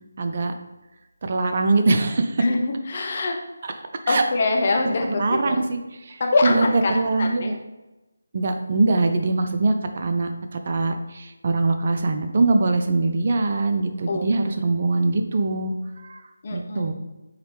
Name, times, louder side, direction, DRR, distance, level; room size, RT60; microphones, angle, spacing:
voice 1, 0.2-0.5 1.2-2.4 3.6-3.7 4.1-4.2 5.2-7.6 8.3-16.2 16.5-16.9, right 3 dB, 40° right, 6 dB, 0.4 m, -23 dB
voice 2, 2.4-3.4 4.1-5.7 6.2-7.5 14.1-14.4 16.4-16.9, left 3 dB, 40° left, 2 dB, 0.7 m, -24 dB
4.8 x 3.1 x 3.3 m, 1.1 s
figure-of-eight pair, 155°, 0 cm